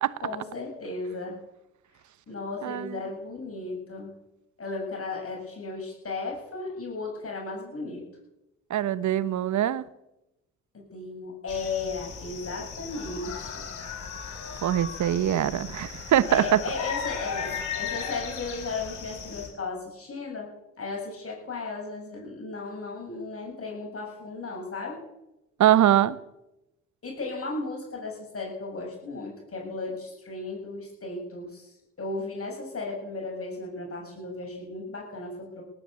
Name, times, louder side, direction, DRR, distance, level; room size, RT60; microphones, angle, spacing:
voice 1, 0.2-1.4 2.3-4.1 4.6-8.0 10.7-13.6 16.3-20.5 20.8-25.0 27.0-31.7 32.0-35.6, left 3 dB, 40° left, 7.6 m, -35 dB
voice 2, 2.6-3.0 8.7-9.8 14.6-16.6 25.6-26.2, right 11 dB, 55° right, 1.1 m, -23 dB
sound 1, 11.5-19.5, left 6 dB, 55° left, 5.6 m, -36 dB
18.0 x 9.4 x 8.3 m
hypercardioid pair, 50°, 35 cm